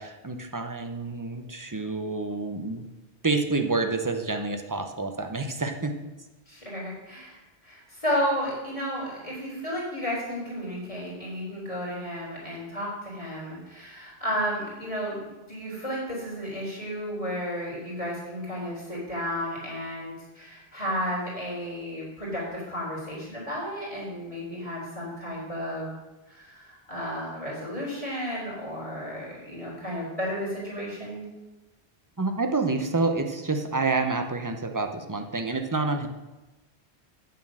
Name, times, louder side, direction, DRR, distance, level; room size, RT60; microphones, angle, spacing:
voice 1, 0.0-2.8 3.2-6.0 32.2-36.1, right 3 dB, 20° right, 5 dB, 0.7 m, -28 dB
voice 2, 6.5-25.9 26.3-31.3, equal, 30° left, -6 dB, 3.7 m, -33 dB
8.6 x 7.4 x 6.2 m, 1.1 s
omnidirectional pair, 1.1 m